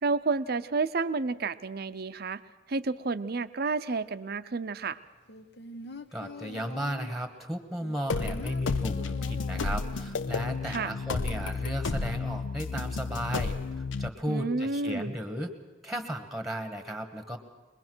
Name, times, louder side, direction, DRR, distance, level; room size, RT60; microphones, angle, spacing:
voice 1, 0.0-2.4 2.7-5.0 10.6-10.9 14.3-15.1, right 3 dB, 55° right, 13 dB, 0.6 m, -30 dB
sound 1, 5.3-7.2 7.8-10.2 10.5-10.6, left 2 dB, 60° left, 1.0 m, -44 dB
voice 2, 6.1-15.5 15.8-17.4, equal, ahead, 7 dB, 1.3 m, -35 dB
sound 2, 8.1-14.1, left 4 dB, 85° left, 0.6 m, -32 dB
23.0 x 21.0 x 6.2 m, 1.2 s
head